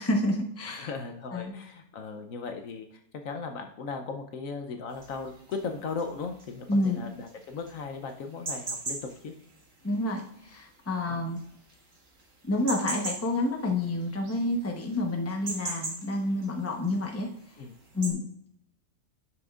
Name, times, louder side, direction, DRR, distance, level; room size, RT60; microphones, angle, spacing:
voice 1, 0.0-0.9 1.3-1.5 6.7-7.1 9.8-11.4 12.4-17.3 17.9-18.3, left 2 dB, 10° left, 2 dB, 0.8 m, -29 dB
voice 2, 0.7-9.3 11.1-11.2 17.6-17.8, left 4 dB, 65° left, 5 dB, 1.0 m, -37 dB
sound 1, 4.9-18.1, right 2 dB, 55° right, 1.9 m, -40 dB
11.0 x 6.1 x 2.4 m, 0.71 s
omnidirectional pair, 1.6 m